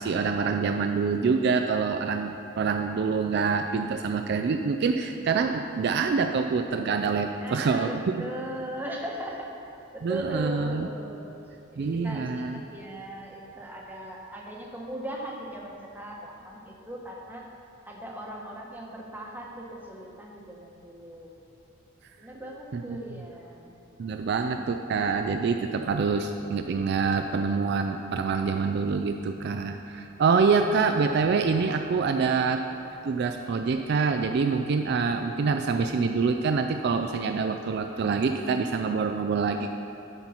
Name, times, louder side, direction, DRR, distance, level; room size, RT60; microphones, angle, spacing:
voice 1, 0.0-7.9 8.2-8.3 10.0-10.9 11.8-12.6 22.7-23.0 24.0-32.6 33.0-39.7, right 5 dB, 50° right, 6 dB, 0.3 m, -26 dB
voice 2, 7.4-9.6 9.9-11.3 11.7-17.5 17.9-21.3 22.2-23.8, right 1 dB, 10° right, -2 dB, 1.0 m, -39 dB
12.0 x 4.5 x 5.5 m, 2.8 s
head